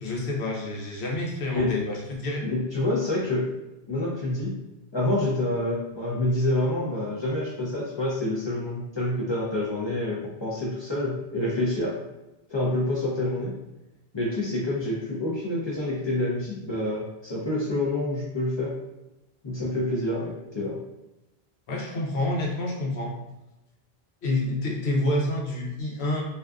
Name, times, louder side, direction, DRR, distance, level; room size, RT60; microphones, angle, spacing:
voice 1, 0.0-2.4 21.7-23.2 24.2-26.2, left 1 dB, 80° left, -2 dB, 0.9 m, -28 dB
voice 2, 2.4-3.5 3.9-4.5 4.9-12.0 12.5-13.5 14.1-18.8 19.4-20.8, left 1 dB, 45° left, -6 dB, 0.3 m, -27 dB
2.5 x 2.3 x 2.3 m, 0.96 s
omnidirectional pair, 1.1 m